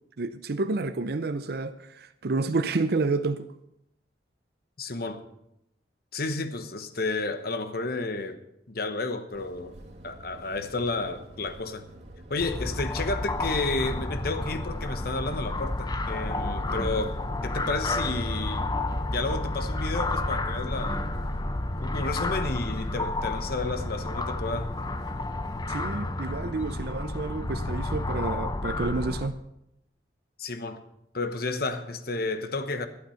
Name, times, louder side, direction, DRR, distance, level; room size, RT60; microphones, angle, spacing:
voice 1, 0.2-3.5 25.7-29.4, right 3 dB, 60° right, 0.6 m, -29 dB
voice 2, 4.8-5.2 6.1-8.4 8.7-9.7 10.0-11.9 12.3-18.7 19.1-21.0 21.8-24.7 30.4-30.8 31.1-32.9, left 3 dB, 60° left, 1.1 m, -31 dB
sound 1, 9.3-26.5, right 1 dB, 40° right, 2.3 m, -47 dB
sound 2, 12.4-29.3, left 2 dB, 25° left, 0.7 m, -31 dB
12.0 x 12.0 x 5.7 m
head